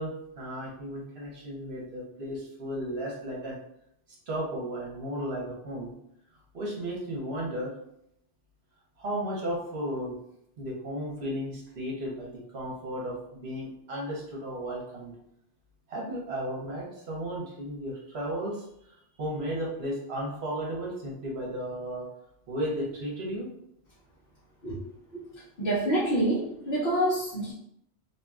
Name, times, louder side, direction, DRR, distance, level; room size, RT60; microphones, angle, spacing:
voice 1, 0.0-3.6 4.3-5.9 6.5-7.7 9.0-10.1 10.6-15.1 15.9-22.1 22.5-23.5, equal, 65° right, -4 dB, 1.1 m, -34 dB
voice 2, 25.6-27.5, right 1 dB, 55° left, -10 dB, 1.0 m, -27 dB
2.8 x 2.6 x 2.3 m, 0.76 s
omnidirectional pair, 1.2 m